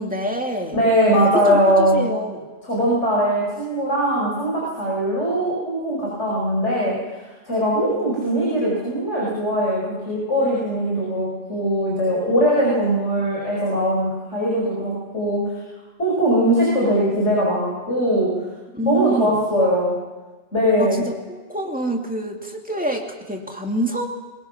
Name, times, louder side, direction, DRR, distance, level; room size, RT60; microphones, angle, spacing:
voice 1, 0.0-0.8 1.1-2.4 18.7-19.4 20.8-24.1, right 1 dB, 5° right, 1 dB, 2.4 m, -27 dB
voice 2, 0.7-2.1 2.6-7.0 7.5-15.4 16.0-18.3 18.9-19.9 20.5-21.1, equal, 75° left, -4 dB, 5.8 m, -20 dB
22.0 x 22.0 x 5.9 m, 1.3 s
omnidirectional pair, 1.2 m